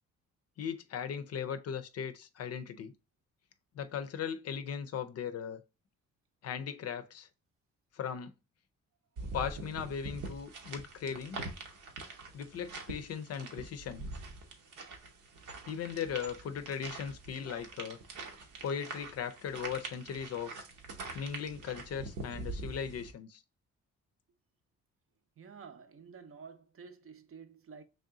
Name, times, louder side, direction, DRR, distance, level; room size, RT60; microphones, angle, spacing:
voice 1, 0.6-2.9 3.7-5.6 6.4-7.3 7.9-8.3 9.3-11.4 12.3-14.0 15.7-18.0 18.6-20.5 21.1-23.4, left 7 dB, 55° left, 0.5 m, -38 dB
sound 1, 9.2-23.1, right 3 dB, 85° right, 1.0 m, -44 dB
voice 2, 25.4-27.8, right 5 dB, 45° right, 0.6 m, -51 dB
3.4 x 2.7 x 3.6 m
cardioid pair, 90°, 30 cm